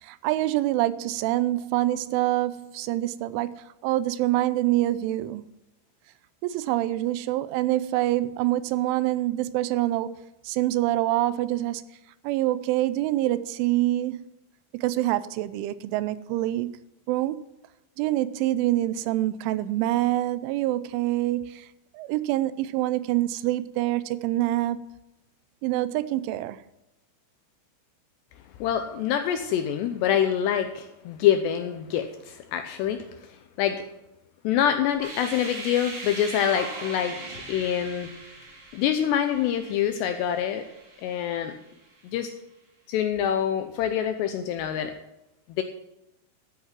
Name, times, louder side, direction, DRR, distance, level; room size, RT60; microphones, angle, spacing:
voice 1, 0.0-5.4 6.4-10.1 10.5-11.8 12.2-14.2 14.7-16.8 17.1-17.4 18.0-21.7 21.9-24.8 25.6-26.6, right 15 dB, 85° right, 3.0 m, -26 dB
voice 2, 28.6-33.8 34.4-38.1 38.7-40.6 41.0-41.5 42.0-42.3 42.9-44.9 45.6-45.7, left 9 dB, 80° left, 2.5 m, -26 dB
sound 1, 34.9-41.8, right 3 dB, 40° right, 3.7 m, -40 dB
13.5 x 8.0 x 5.9 m
omnidirectional pair, 5.6 m